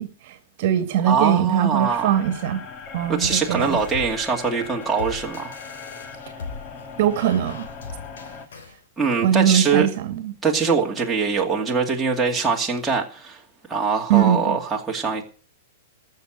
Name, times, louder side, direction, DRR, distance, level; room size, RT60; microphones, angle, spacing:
voice 1, 0.0-2.6 2.9-3.8 7.0-7.7 9.2-10.3 14.1-14.6, right 10 dB, 50° right, 1.7 m, -21 dB
voice 2, 1.0-2.1 3.1-5.5 9.0-9.9 10.4-13.4 13.7-15.2, right 5 dB, 5° right, 2.4 m, -23 dB
sound 1, 1.8-8.5, left 5 dB, 30° left, 1.7 m, -39 dB
sound 2, 3.2-8.8, left 4 dB, 85° left, 3.2 m, -39 dB
14.5 x 6.7 x 8.9 m
hypercardioid pair, 150°, 0 cm